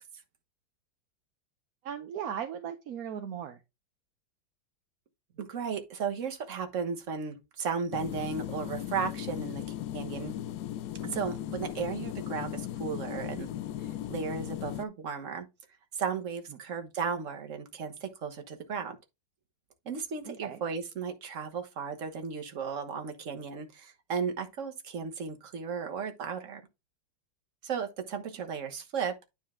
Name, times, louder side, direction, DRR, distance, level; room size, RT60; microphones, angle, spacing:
voice 1, 1.8-3.6 16.5-16.6 20.3-20.6, right 8 dB, 65° right, 1.0 m, -37 dB
voice 2, 5.4-9.6 9.9-10.4 11.0-13.5 13.8-15.5 15.9-19.0 19.8-26.6 27.6-29.2, right 6 dB, 45° right, 1.4 m, -35 dB
sound 1, 7.9-14.9, left 11 dB, 75° left, 0.9 m, -37 dB
9.5 x 4.4 x 3.7 m
omnidirectional pair, 2.2 m